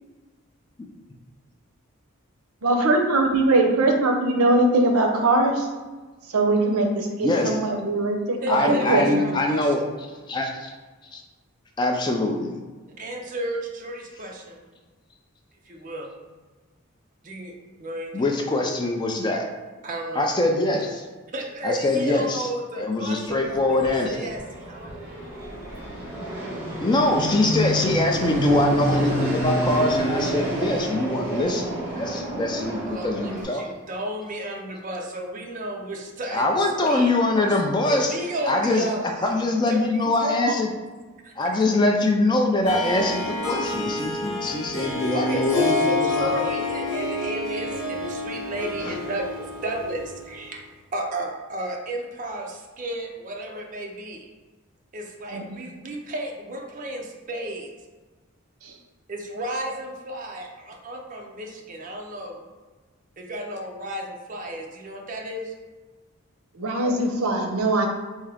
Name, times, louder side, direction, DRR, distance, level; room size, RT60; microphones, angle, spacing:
voice 1, 2.6-5.7 6.3-9.2 55.3-55.4 58.6-58.7 66.5-67.9, right 2 dB, 85° right, 3 dB, 0.6 m, -21 dB
voice 2, 7.2-7.6 8.5-9.8 10.3-10.7 11.1-11.2 11.8-12.6 18.1-19.5 20.2-21.0 21.6-22.5 22.7-24.3 26.8-33.6 36.3-38.1 38.4-38.9 39.2-40.7 41.4-46.3 48.8-49.0, left 2 dB, 20° left, 2 dB, 0.3 m, -23 dB
voice 3, 8.4-9.8 13.0-14.6 15.7-16.2 17.2-17.5 17.8-18.3 19.8-20.3 21.3-25.2 25.7-25.8 32.8-36.6 36.9-37.6 37.8-39.0 39.7-40.6 41.2-41.6 45.1-50.6 50.9-54.3 54.9-57.7 59.1-62.4 63.2-65.5, right 1 dB, 35° right, 1 dB, 0.5 m, -33 dB
Fixed-wing aircraft airplane, 23.2-33.4, right 1 dB, 10° right, 1.0 m, -29 dB
Harp, 42.6-50.3, left 2 dB, 55° left, 1.3 m, -28 dB
3.6 x 2.7 x 3.4 m, 1.3 s
head